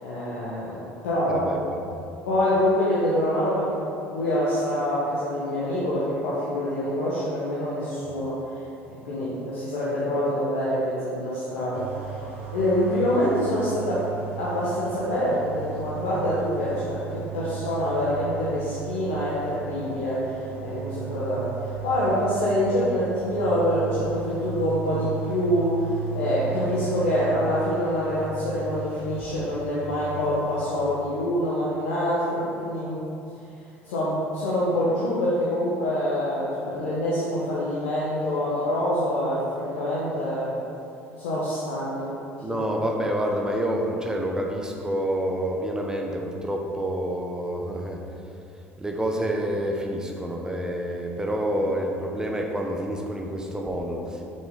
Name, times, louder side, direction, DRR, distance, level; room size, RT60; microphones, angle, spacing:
voice 1, 0.0-1.5 2.3-3.8 4.1-8.3 8.9-12.0 12.5-14.1 14.4-33.1 33.8-40.5 41.2-42.2 42.4-42.6, left 1 dB, 70° left, -9 dB, 1.4 m, -26 dB
voice 2, 1.3-2.0 8.2-8.3 42.4-48.0 48.8-54.2, right 1 dB, 10° right, 1 dB, 1.0 m, -28 dB
sound 1, 11.7-30.6, right 8 dB, 75° right, 1.1 m, -36 dB
7.5 x 6.1 x 3.8 m, 2.6 s
figure-of-eight pair, 60°, 7 cm